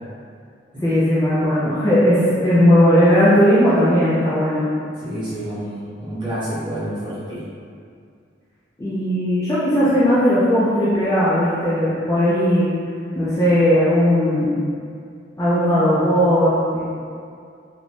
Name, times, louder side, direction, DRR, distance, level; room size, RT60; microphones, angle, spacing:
voice 1, 0.8-4.7 8.8-12.7 13.2-14.5 15.4-16.8, equal, 15° left, -10 dB, 0.3 m, -17 dB
voice 2, 5.0-7.4, right 1 dB, 25° right, -12 dB, 0.8 m, -29 dB
2.5 x 2.1 x 3.0 m, 2.3 s
head